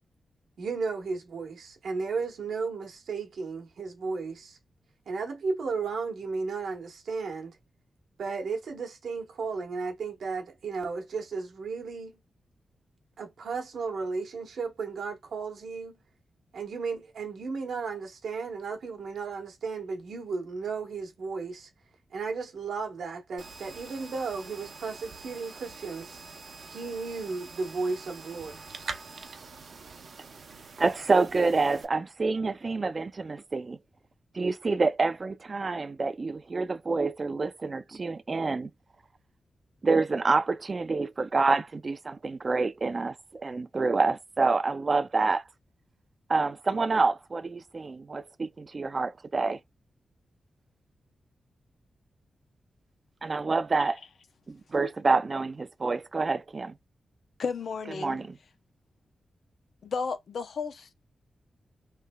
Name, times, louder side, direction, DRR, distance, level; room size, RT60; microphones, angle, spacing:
voice 1, 0.6-4.6 5.1-7.6 8.2-12.2 13.2-16.0 16.5-21.7 22.1-26.2 26.7-28.6, right 4 dB, 80° right, 1.1 m, -34 dB
sound 1, 23.4-31.8, right 4 dB, 60° right, 0.7 m, -45 dB
voice 2, 30.8-33.8 34.3-38.7 39.8-45.4 46.3-49.6 53.2-54.0 54.5-56.7 58.0-58.4, right 3 dB, 35° right, 0.4 m, -27 dB
voice 3, 57.4-58.2 59.8-60.9, left 5 dB, 70° left, 0.6 m, -33 dB
3.2 x 3.2 x 2.2 m
wide cardioid pair, 100°, 0 cm